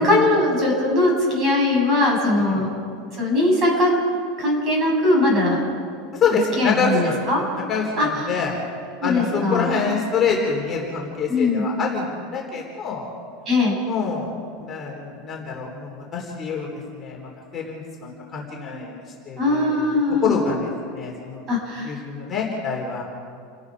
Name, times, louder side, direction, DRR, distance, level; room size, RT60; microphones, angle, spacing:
voice 1, 0.0-2.7 3.1-4.0 4.4-5.6 6.6-7.4 8.0-8.3 9.0-9.7 11.3-11.7 13.5-13.8 19.4-20.4 21.5-22.0, left 2 dB, 30° right, -1 dB, 7.0 m, -20 dB
voice 2, 6.1-7.2 7.6-8.5 9.0-13.1 13.9-18.9 19.3-21.4 21.8-23.0, left 5 dB, 20° left, -3 dB, 3.5 m, -26 dB
29.5 x 18.5 x 4.9 m, 2.2 s
supercardioid pair, 155°, 0 cm